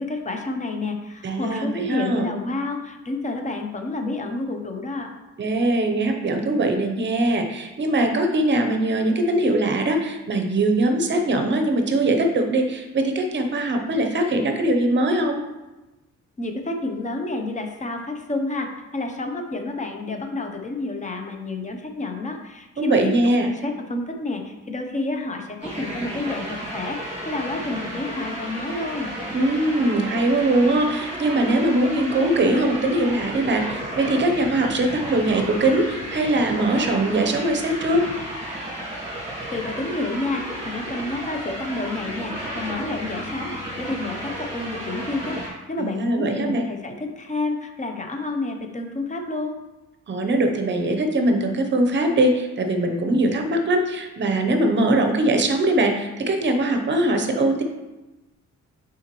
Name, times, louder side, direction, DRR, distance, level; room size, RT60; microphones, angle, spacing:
voice 1, 0.0-5.1 16.4-18.7 18.9-29.1 39.5-49.6, left 2 dB, 25° left, 4 dB, 0.6 m, -29 dB
voice 2, 1.2-2.3 5.4-15.4 22.8-23.5 29.3-38.0 45.8-46.6 50.1-57.6, right 1 dB, 35° right, 5 dB, 0.7 m, -21 dB
sound 1, 25.6-45.5, right 1 dB, 20° right, 2.1 m, -33 dB
8.7 x 3.8 x 3.0 m, 1.1 s
wide cardioid pair, 160°, 30 cm